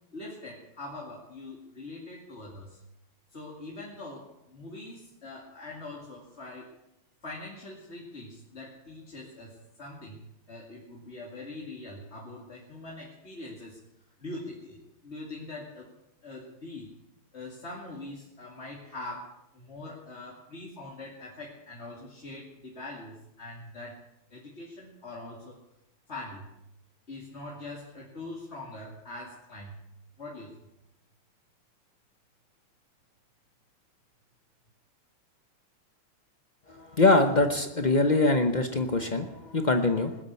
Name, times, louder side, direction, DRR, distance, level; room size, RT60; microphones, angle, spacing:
voice 1, 0.1-2.8 3.3-6.7 7.2-10.2 10.5-13.8 14.2-15.9 16.2-16.9 17.3-24.0 24.3-25.6 26.1-26.5 27.1-29.8 30.2-30.6, left 2 dB, 30° left, -3 dB, 2.6 m, -43 dB
voice 2, 36.7-40.2, left 2 dB, 90° left, 6 dB, 0.4 m, -23 dB
20.0 x 8.6 x 8.3 m, 0.86 s
omnidirectional pair, 2.4 m